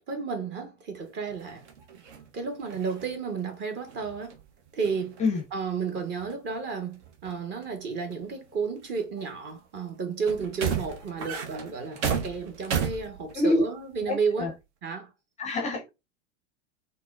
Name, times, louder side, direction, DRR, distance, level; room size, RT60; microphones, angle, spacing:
voice 1, 0.1-1.7 2.3-4.4 4.7-5.2 5.5-14.5 14.8-15.1, right 5 dB, 30° right, 0.9 m, -32 dB
sound 1, 1.3-4.5 4.8-5.7 5.9-6.5 7.0-7.7 8.1-8.2 8.8-9.5 10.2-13.6 13.9-14.1, right 7 dB, 60° right, 0.8 m, -34 dB
voice 2, 14.1-14.5 15.4-15.9, left 2 dB, 20° left, 0.5 m, -26 dB
3.9 x 2.1 x 2.4 m
figure-of-eight pair, 90°, 38 cm